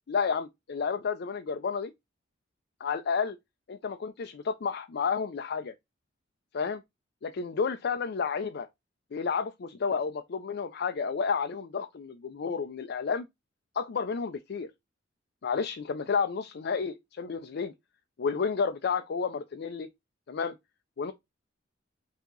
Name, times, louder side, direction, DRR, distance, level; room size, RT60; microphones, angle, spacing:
voice 1, 0.1-1.9 2.8-3.4 3.7-5.7 6.5-6.8 7.2-8.7 9.1-13.3 13.7-14.7 15.4-17.7 18.2-19.9 20.3-20.5 21.0-21.1, left 5 dB, 60° left, 0.4 m, -31 dB
4.5 x 2.8 x 3.8 m
head